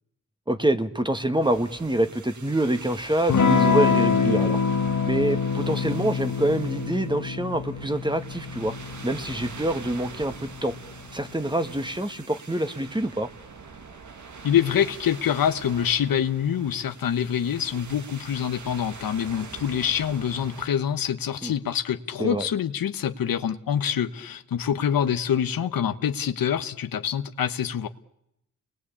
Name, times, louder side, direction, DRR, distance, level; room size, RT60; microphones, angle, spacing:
voice 1, 0.5-4.6 5.0-8.7 9.0-10.7 11.1-13.3 21.4-21.5 22.2-22.5, right 1 dB, 15° right, 1.9 m, -26 dB
sound 1, 1.4-20.7, right 4 dB, 60° right, 2.0 m, -44 dB
Electric guitar / Strum, 3.3-11.6, left 5 dB, 60° left, 1.5 m, -26 dB
voice 2, 14.4-27.9, left 9 dB, 85° left, 1.3 m, -25 dB
29.0 x 21.0 x 8.6 m
cardioid pair, 60°, 34 cm